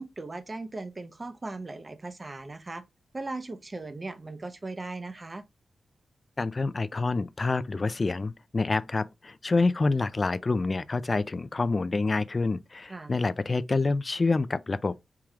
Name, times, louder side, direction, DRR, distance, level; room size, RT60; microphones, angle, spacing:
voice 1, 0.0-2.8 3.1-5.4 12.9-13.1, right 2 dB, 30° right, 0.6 m, -38 dB
voice 2, 6.4-15.0, left 3 dB, 40° left, 0.3 m, -27 dB
4.7 x 2.4 x 3.0 m
cardioid pair, 65°, 0 cm